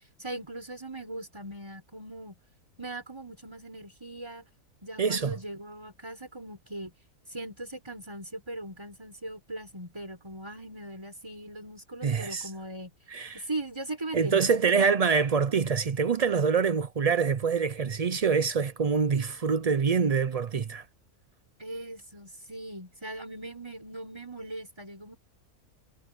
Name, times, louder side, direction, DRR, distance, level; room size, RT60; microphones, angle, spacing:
voice 1, 0.2-2.3 2.8-4.4 4.8-6.9 7.3-12.9 13.3-14.9 21.6-25.2, right 1 dB, 15° right, 5.0 m, -40 dB
voice 2, 5.0-5.3 12.0-12.5 13.1-13.4 14.1-20.9, right 5 dB, 85° right, 0.3 m, -25 dB
omnidirectional pair, 1.6 m